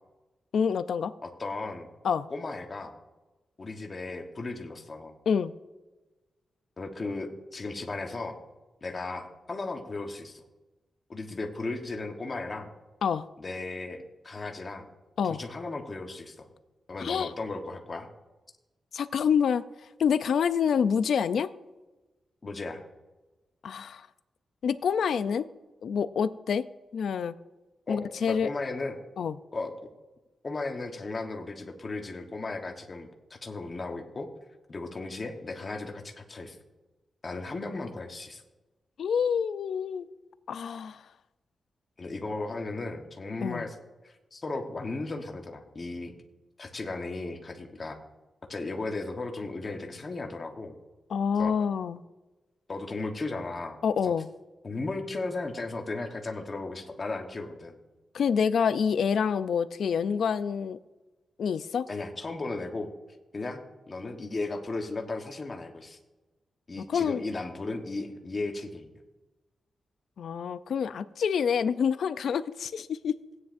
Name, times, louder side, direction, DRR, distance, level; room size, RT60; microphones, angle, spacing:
voice 1, 0.5-1.1 2.0-2.3 5.3-5.5 13.0-13.3 15.2-15.4 17.0-17.3 18.9-19.6 20.0-21.5 23.6-24.1 24.6-25.5 25.8-26.7 26.9-27.3 27.9-28.5 29.2-29.4 39.0-40.1 40.5-41.0 43.4-43.6 51.1-52.0 53.8-54.3 58.1-60.8 61.4-61.9 66.9-67.2 70.2-73.2, left 7 dB, 70° left, 14 dB, 0.4 m, -27 dB
voice 2, 1.2-1.9 2.3-2.9 3.6-5.2 6.8-8.4 8.8-10.4 11.1-12.7 13.4-14.9 15.2-16.5 16.9-18.1 22.4-22.8 27.9-29.0 29.5-29.7 30.4-34.3 34.7-36.6 37.2-38.4 42.0-43.7 44.0-46.1 46.6-48.0 48.5-50.8 51.4-51.5 52.7-54.1 54.6-57.7 61.9-62.9 63.3-63.6 63.9-66.0 66.7-68.9, left 3 dB, 30° left, 3 dB, 1.1 m, -36 dB
16.5 x 9.5 x 2.6 m, 1.1 s
wide cardioid pair, 170°, 0 cm